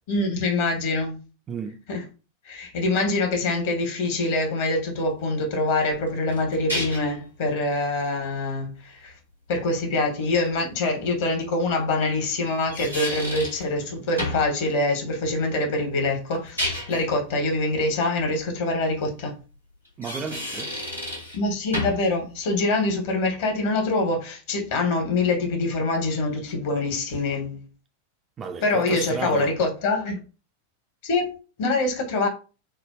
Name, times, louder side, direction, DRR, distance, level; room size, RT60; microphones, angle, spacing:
voice 1, 0.1-1.2 1.9-2.0 2.4-9.1 9.5-19.3 21.3-27.6 28.6-30.2 31.0-32.3, left 2 dB, 50° left, 0.9 m, -25 dB
voice 2, 1.5-1.8 20.0-20.7 28.4-29.5, right 5 dB, 25° right, 0.3 m, -33 dB
sound 1, 5.9-7.2 10.4-10.5 12.5-13.7 14.2-14.5 16.3-17.1 19.9-21.4 21.7-22.1, left 1 dB, 90° left, 1.1 m, -31 dB
3.4 x 2.0 x 2.3 m
figure-of-eight pair, 90°, 0 cm